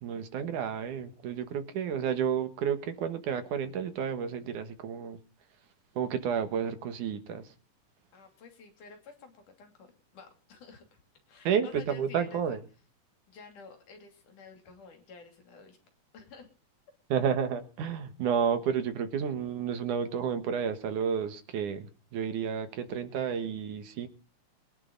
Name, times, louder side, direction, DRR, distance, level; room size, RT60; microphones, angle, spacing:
voice 1, 0.0-5.2 6.0-7.4 11.4-12.6 17.1-21.9 22.1-24.1, right 7 dB, 70° right, 9 dB, 2.9 m, -31 dB
voice 2, 8.1-9.9 10.1-11.0 11.3-12.6 13.3-15.8 16.1-16.5, left 4 dB, 65° left, 5 dB, 4.3 m, -51 dB
22.5 x 11.0 x 3.9 m, 0.37 s
omnidirectional pair, 3.8 m